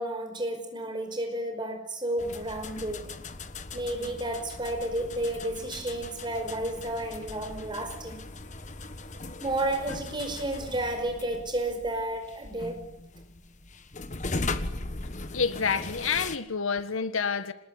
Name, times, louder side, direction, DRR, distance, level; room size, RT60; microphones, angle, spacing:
voice 1, 0.0-3.1 3.7-8.2 9.4-12.9, right 1 dB, 20° right, 5.0 m, -32 dB
sound 1, 2.2-16.4, left 3 dB, 35° left, 1.3 m, -39 dB
voice 2, 15.3-17.5, left 5 dB, 75° left, 1.6 m, -28 dB
26.0 x 20.0 x 10.0 m
head